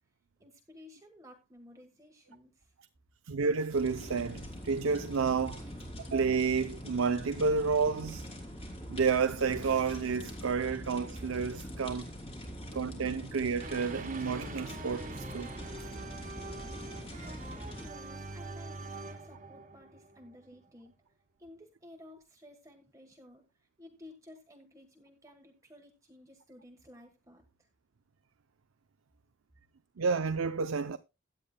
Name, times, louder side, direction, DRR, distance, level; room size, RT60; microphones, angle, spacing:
voice 1, 0.4-2.7 17.8-20.9 21.4-27.7, left 1 dB, 15° right, 1.3 m, -55 dB
voice 2, 3.3-5.6 6.1-8.3 8.9-12.1 12.7-15.5 30.0-31.0, right 5 dB, 85° right, 0.6 m, -30 dB
sound 1, 3.7-17.9, equal, 30° left, 3.3 m, -43 dB
sound 2, 13.6-20.6, right 3 dB, 40° right, 1.6 m, -44 dB
16.5 x 10.5 x 2.2 m
head